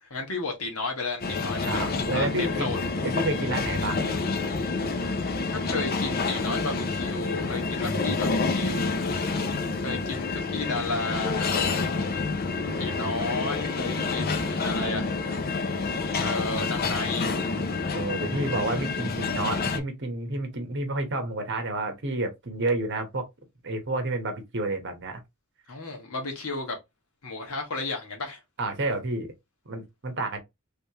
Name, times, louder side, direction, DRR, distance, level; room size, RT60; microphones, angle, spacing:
voice 1, 0.0-2.9 5.4-9.1 9.8-12.2 12.8-15.2 16.1-17.3 25.7-26.8 27.2-28.4, left 3 dB, 80° left, 1.5 m, -33 dB
sound 1, 1.2-19.8, left 4 dB, 45° left, 0.6 m, -28 dB
voice 2, 1.7-2.8 3.0-4.1 17.9-23.3 23.6-25.2 28.6-29.3 29.7-30.4, right 2 dB, 55° right, 1.1 m, -30 dB
3.3 x 3.2 x 2.9 m
head